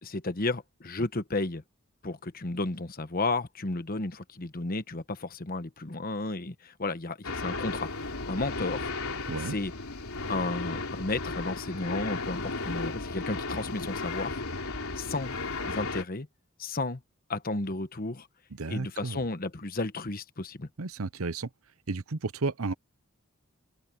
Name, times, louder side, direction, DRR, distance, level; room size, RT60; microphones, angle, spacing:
voice 1, 0.0-1.6 2.0-9.7 10.3-14.4 15.0-15.3 15.6-16.3 16.6-17.0 17.3-18.3 18.7-20.7, left 2 dB, 40° left, 1.1 m, -33 dB
sound 1, 7.2-16.0, left 3 dB, 75° left, 3.6 m, -35 dB
voice 2, 18.5-19.3 20.8-21.5 21.9-22.7, right 3 dB, 75° right, 0.8 m, -33 dB
head